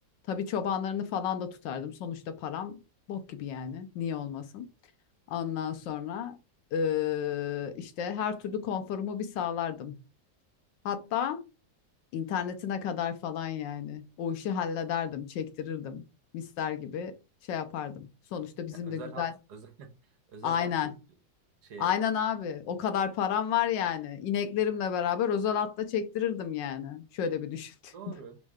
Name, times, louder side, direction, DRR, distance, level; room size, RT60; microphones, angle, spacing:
voice 1, 0.3-2.8 3.1-4.7 5.3-6.4 6.7-9.9 10.8-11.4 12.1-16.0 16.3-17.2 17.5-19.3 20.4-20.9 21.8-27.9, left 8 dB, 80° left, 1.3 m, -31 dB
voice 2, 18.7-19.9 20.3-20.9 21.6-22.0 27.9-28.4, right 5 dB, 65° right, 1.3 m, -44 dB
3.7 x 3.1 x 3.4 m
omnidirectional pair, 2.0 m